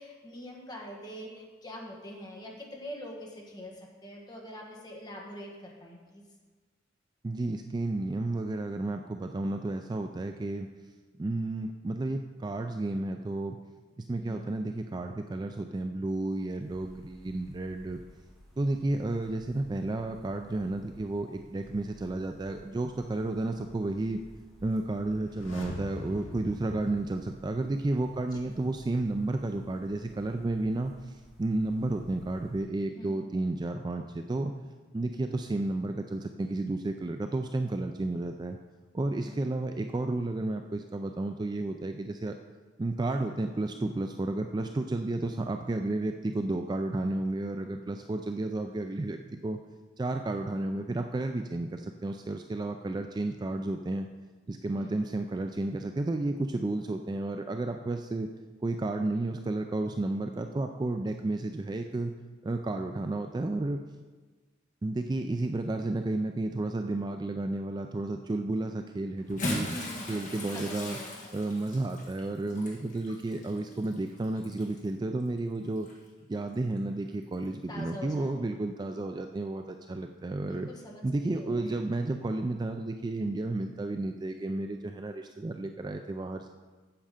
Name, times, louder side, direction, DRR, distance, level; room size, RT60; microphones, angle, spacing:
voice 1, 0.0-6.2 14.2-14.5 28.3-28.4 32.9-33.5 39.2-39.4 54.7-55.0 69.6-71.2 77.7-78.5 80.5-81.0 81.3-81.7, equal, 20° left, -1 dB, 1.6 m, -44 dB
voice 2, 7.2-10.7 11.2-13.6 14.0-18.0 18.6-24.2 24.6-34.5 34.9-38.6 38.9-42.4 42.8-49.6 50.0-54.1 54.5-58.3 58.6-62.1 62.4-63.8 64.8-69.7 70.1-71.0 71.3-75.9 76.3-80.7 81.0-86.5, right 2 dB, 20° right, 6 dB, 0.3 m, -32 dB
sound 1, 16.6-32.6, equal, ahead, 2.6 m, -56 dB
sound 2, 25.2-28.1 28.3-28.4, equal, 85° left, 1.8 m, -43 dB
Bathtub (filling or washing) / Splash splatter, 69.2-74.9 75.8-75.9 77.4-77.5, left 1 dB, 40° left, 1.6 m, -39 dB
8.9 x 7.5 x 5.0 m, 1.3 s
head